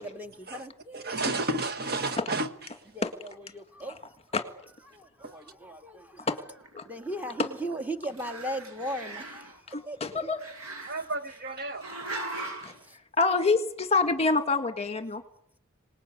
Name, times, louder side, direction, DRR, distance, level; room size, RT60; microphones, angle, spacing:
voice 1, 0.0-1.2 2.9-4.1 4.9-6.3 6.8-10.2 11.9-12.1 12.8-13.0, right 1 dB, 10° right, 1.8 m, -38 dB
voice 2, 0.9-2.8 5.2-5.3 10.9-11.9, right 2 dB, 45° right, 1.6 m, -32 dB
Growling, 6.6-7.8 8.1-9.5 10.4-11.4 11.8-12.8, right 2 dB, 75° right, 6.6 m, -39 dB
voice 3, 9.7-10.4 12.6-12.7 13.2-15.2, left 3 dB, 30° left, 1.7 m, -26 dB
26.0 x 19.5 x 8.4 m
head